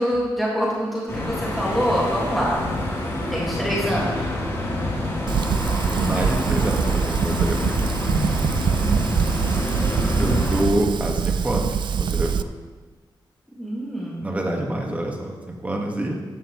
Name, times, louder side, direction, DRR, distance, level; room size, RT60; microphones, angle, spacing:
voice 1, 0.0-2.6 3.3-4.3 9.0-9.5 13.6-14.3, equal, ahead, -5 dB, 1.9 m, -25 dB
sound 1, 1.1-10.6, left 1 dB, 30° left, 3.3 m, -26 dB
voice 2, 5.2-5.5 5.9-7.7 10.2-12.5 14.2-16.2, right 1 dB, 15° right, 1 dB, 1.5 m, -27 dB
Fire, 5.3-12.4, right 7 dB, 65° right, 0.4 m, -24 dB
14.0 x 9.9 x 3.1 m, 1.3 s
wide cardioid pair, 140°, 9 cm